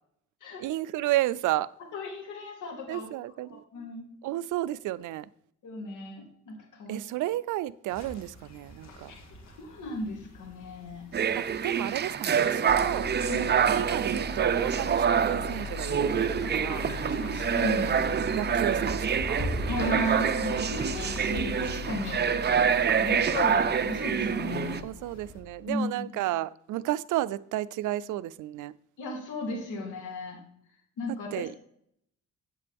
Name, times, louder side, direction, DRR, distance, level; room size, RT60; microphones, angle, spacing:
voice 1, 0.6-1.7 2.9-3.6 4.2-5.3 6.9-9.2 11.3-16.9 18.4-19.5 24.8-28.7 31.3-31.5, right 15 dB, 80° right, 0.5 m, -32 dB
voice 2, 1.9-3.1 3.7-4.1 5.6-7.0 9.1-9.2 9.5-11.0 13.3-13.4 16.7-18.0 19.7-24.8 25.7-26.1 29.0-30.4 31.0-31.6, left 2 dB, 80° left, 3.1 m, -35 dB
sound 1, 7.9-25.4, equal, 60° left, 2.3 m, -44 dB
sound 2, 11.1-24.8, right 7 dB, 35° right, 0.6 m, -26 dB
sound 3, 12.7-25.8, left 5 dB, 10° left, 0.3 m, -40 dB
9.8 x 8.3 x 3.4 m
cardioid pair, 90°, 30 cm